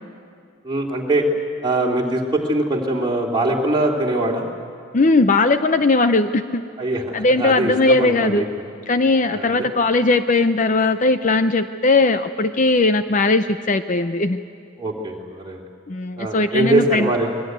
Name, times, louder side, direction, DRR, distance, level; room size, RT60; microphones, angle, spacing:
voice 1, 0.6-1.2 1.6-4.4 6.8-7.0 7.4-8.5 9.3-9.7 14.8-15.6 16.2-17.3, right 2 dB, 20° right, -1 dB, 2.8 m, -22 dB
voice 2, 4.9-6.6 7.1-8.4 8.9-14.4 15.9-17.1, left 3 dB, 35° left, 10 dB, 0.6 m, -18 dB
24.5 x 21.5 x 9.3 m, 2.3 s
head